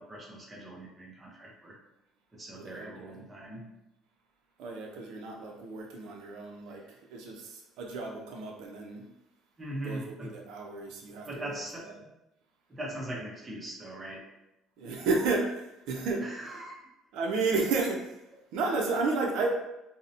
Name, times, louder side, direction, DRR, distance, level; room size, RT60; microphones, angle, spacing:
voice 1, 0.0-1.8 2.3-3.6 9.6-10.3 11.2-12.1 12.7-14.3 16.2-16.8, right 1 dB, 15° right, -3 dB, 0.5 m, -40 dB
voice 2, 2.6-2.9 4.6-6.8 7.1-9.0 9.8-11.9 14.8-16.2 17.1-18.2 18.5-19.5, right 3 dB, 75° right, 0 dB, 0.4 m, -32 dB
2.7 x 2.0 x 2.5 m, 0.90 s
cardioid pair, 155°, 0 cm